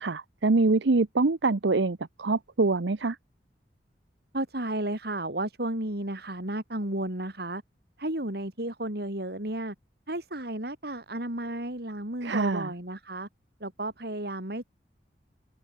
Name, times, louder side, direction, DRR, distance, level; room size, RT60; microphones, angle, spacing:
voice 1, 0.0-3.2 12.2-12.7, right 3 dB, 75° right, 0.8 m, -25 dB
voice 2, 4.3-7.6 8.0-9.7 10.1-13.3 13.6-14.7, right 1 dB, 60° right, 4.2 m, -33 dB
head